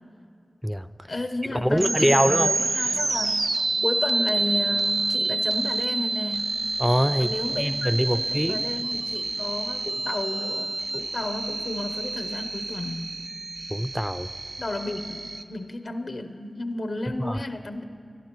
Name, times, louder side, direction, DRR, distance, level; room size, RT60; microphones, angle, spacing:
voice 1, 1.1-3.3 3.8-6.5 7.2-13.2 14.6-17.8, left 2 dB, 75° left, 8 dB, 0.6 m, -32 dB
voice 2, 1.6-2.5 6.8-7.3 7.6-8.6 13.7-14.3 17.2-17.4, equal, ahead, 12 dB, 0.3 m, -23 dB
baby radio, 1.7-15.4, right 2 dB, 75° right, 0.6 m, -28 dB
27.5 x 11.5 x 3.0 m, 2.4 s
wide cardioid pair, 75°, 0 cm